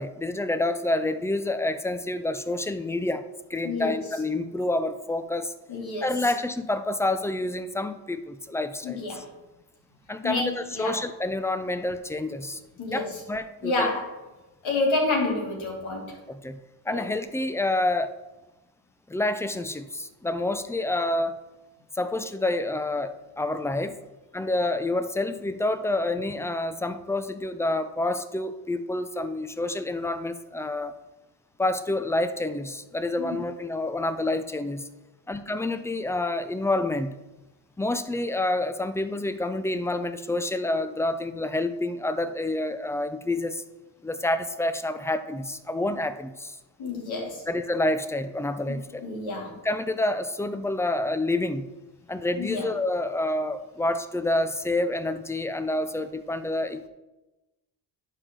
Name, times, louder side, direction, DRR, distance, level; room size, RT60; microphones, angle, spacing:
voice 1, 0.0-3.2 3.5-5.5 6.0-9.2 10.1-12.6 12.9-13.9 16.3-16.6 16.8-18.2 19.1-21.4 21.9-24.0 24.3-30.9 31.6-34.9 35.3-37.1 37.8-43.6 44.0-46.6 47.5-49.0 49.6-51.7 52.1-56.9, left 2 dB, 5° left, 11 dB, 0.6 m, -28 dB
voice 2, 3.6-4.0 5.7-6.1 8.8-9.3 10.2-10.9 12.8-13.0 13.6-14.1 14.6-16.2 16.9-17.0 33.2-33.4 46.8-47.4 49.0-49.5 52.4-52.7, left 3 dB, 65° left, -1 dB, 2.9 m, -28 dB
11.0 x 4.8 x 3.9 m, 1.0 s
supercardioid pair, 70°, 49 cm